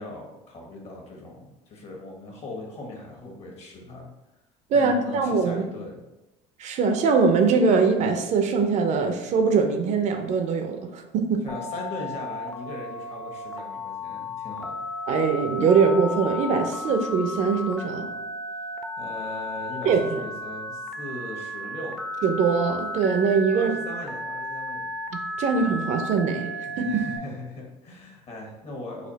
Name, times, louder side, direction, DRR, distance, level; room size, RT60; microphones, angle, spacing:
voice 1, 0.0-4.1 4.7-6.0 11.4-14.9 19.0-22.0 23.5-24.9 26.7-29.1, left 2 dB, 45° left, 0 dB, 1.3 m, -39 dB
voice 2, 4.7-5.6 6.6-11.4 15.1-18.1 19.8-20.2 22.2-23.7 25.1-26.9, right 5 dB, 50° right, 6 dB, 0.6 m, -22 dB
Telephone, 11.5-27.2, left 1 dB, 5° left, 0.6 m, -34 dB
4.2 x 2.4 x 4.0 m, 0.98 s
supercardioid pair, 105°, 15 cm